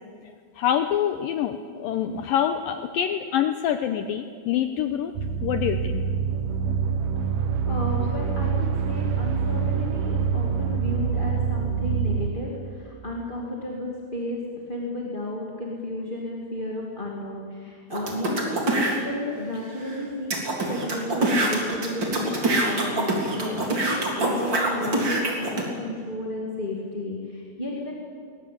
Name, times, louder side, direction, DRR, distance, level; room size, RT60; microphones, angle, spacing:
voice 1, 0.6-5.1 5.4-6.0, left 9 dB, 85° left, 8 dB, 2.0 m, -26 dB
sound 1, 5.2-12.3, right 6 dB, 70° right, 1.7 m, -25 dB
voice 2, 7.3-14.4 14.7-20.3 20.7-27.9, left 1 dB, 15° left, -2 dB, 1.7 m, -33 dB
sound 2, 17.9-19.0 19.6-19.7 19.9-20.0 20.3-25.6, right 2 dB, 30° right, 3.5 m, -25 dB
21.5 x 19.0 x 8.7 m, 2.2 s
omnidirectional pair, 4.9 m